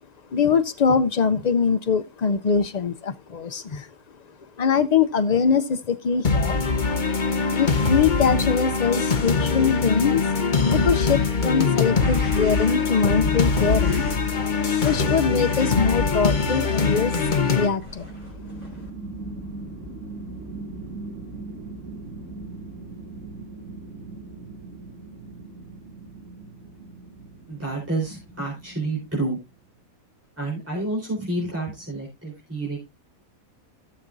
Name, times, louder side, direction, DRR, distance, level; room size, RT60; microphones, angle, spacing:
voice 1, 0.3-3.9 4.6-6.6 7.3-10.3 10.7-14.1 14.8-17.1 17.5-18.1, left 6 dB, 85° left, 0.3 m, -23 dB
sound 1, 6.2-17.7, left 4 dB, 35° left, 1.1 m, -22 dB
sound 2, 11.8-13.0 13.7-14.2 14.7-15.0 15.4-15.7 16.3-18.9, equal, 25° right, 4.5 m, -44 dB
sound 3, 17.3-29.4, right 2 dB, 55° right, 2.8 m, -39 dB
voice 2, 27.5-29.4 30.4-32.8, right 2 dB, 10° right, 3.8 m, -29 dB
15.5 x 7.2 x 2.6 m
omnidirectional pair, 1.5 m